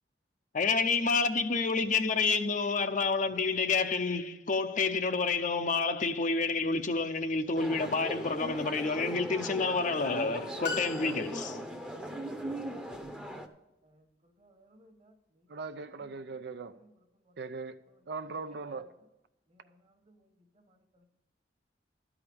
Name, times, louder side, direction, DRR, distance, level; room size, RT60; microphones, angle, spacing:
voice 1, 0.5-11.6, left 4 dB, 45° left, 0.6 m, -29 dB
sound 1, 7.5-13.5, equal, 5° right, 0.8 m, -39 dB
sound 2, 10.6-11.8, left 4 dB, 85° left, 2.7 m, -38 dB
voice 2, 13.8-16.4 16.7-16.9 17.1-17.4 17.9-18.0 18.5-18.8 19.5-21.1, right 3 dB, 35° right, 1.3 m, -61 dB
voice 3, 15.5-16.8 17.4-17.8 18.1-18.8, right 4 dB, 65° right, 0.5 m, -39 dB
12.5 x 4.9 x 8.6 m
head